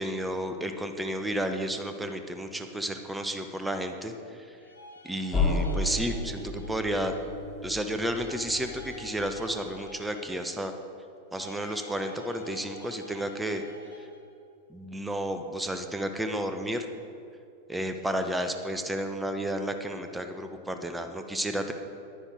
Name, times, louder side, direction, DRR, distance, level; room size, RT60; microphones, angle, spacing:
voice 1, 0.0-4.4 5.0-7.1 7.6-10.7 11.3-13.6 14.7-16.9 17.7-21.7, right 1 dB, 5° right, 7 dB, 0.8 m, -32 dB
sound 1, 4.5-7.4 8.0-10.8 11.3-14.3, left 3 dB, 75° left, 1.3 m, -49 dB
sound 2, 5.3-10.0, left 2 dB, 10° left, 2.5 m, -33 dB
10.5 x 9.9 x 4.9 m, 2.4 s
figure-of-eight pair, 90°, 0 cm